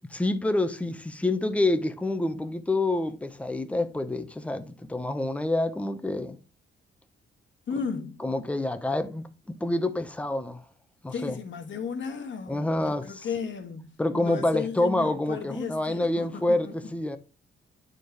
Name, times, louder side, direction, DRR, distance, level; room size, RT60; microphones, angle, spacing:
voice 1, 0.1-6.4 8.2-10.6 11.0-11.4 12.5-13.3 14.0-17.2, left 2 dB, 5° left, 0.7 m, -27 dB
voice 2, 7.7-8.2 11.1-16.9, left 6 dB, 65° left, 1.5 m, -35 dB
9.0 x 4.4 x 3.3 m
cardioid pair, 90°, 21 cm